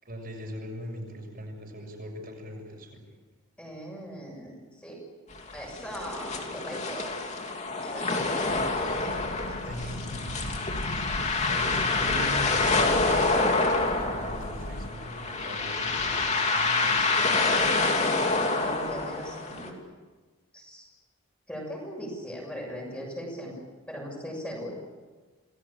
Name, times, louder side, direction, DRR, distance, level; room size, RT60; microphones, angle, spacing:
voice 1, 0.0-3.0 9.6-10.3 10.7-11.0 11.4-13.3 14.1-17.5, equal, 40° right, 1 dB, 6.5 m, -40 dB
voice 2, 3.6-5.0 5.5-7.2 7.8-8.6 9.0-9.1 18.5-19.8 20.5-20.8 21.5-23.6 23.9-24.8, equal, 5° left, -1 dB, 6.8 m, -39 dB
sound 1, 5.3-19.7, left 3 dB, 30° left, 3.0 m, -27 dB
sound 2, 8.5-14.9, left 1 dB, 65° left, 1.8 m, -39 dB
28.5 x 20.5 x 8.8 m, 1.3 s
head